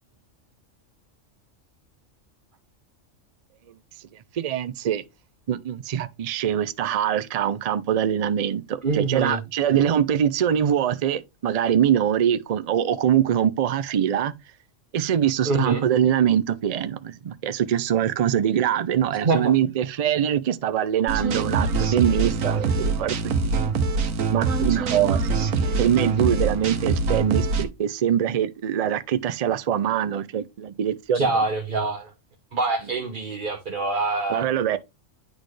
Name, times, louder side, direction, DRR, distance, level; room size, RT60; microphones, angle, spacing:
voice 1, 4.3-5.0 5.5-14.3 14.9-23.5 24.3-25.2 25.8-31.4 34.3-34.8, right 9 dB, 65° right, 0.3 m, -23 dB
voice 2, 8.8-9.4 15.4-15.8 19.2-19.5 31.1-32.1 32.5-34.5, right 3 dB, 40° right, 1.1 m, -25 dB
sound 1, 21.1-27.7, right 4 dB, 90° right, 1.3 m, -24 dB
9.7 x 4.2 x 3.2 m
omnidirectional pair, 1.3 m